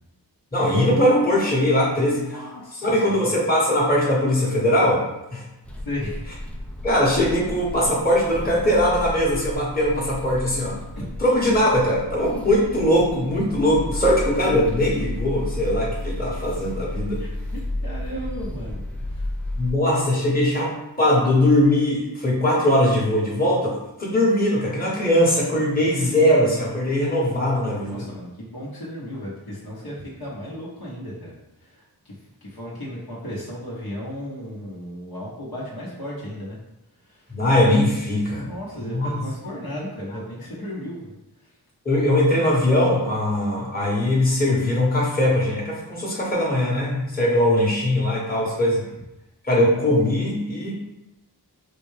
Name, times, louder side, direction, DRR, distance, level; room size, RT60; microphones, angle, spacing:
voice 1, 0.5-2.5 2.8-5.0 5.3-5.5 6.8-10.8 11.2-17.2 19.6-28.1 37.3-38.5 38.9-39.2 39.7-39.8 41.8-48.8 49.4-50.8, left 1 dB, 20° left, -5 dB, 1.2 m, -20 dB
voice 2, 2.0-3.3 5.8-6.2 17.2-19.3 25.8-25.9 27.9-32.2 32.4-36.6 37.0-37.3 38.3-41.6, equal, 60° left, -6 dB, 1.0 m, -35 dB
sound 1, 5.6-19.7, left 1 dB, 5° left, 0.4 m, -32 dB
4.1 x 2.2 x 3.2 m, 0.93 s
wide cardioid pair, 55°, 42 cm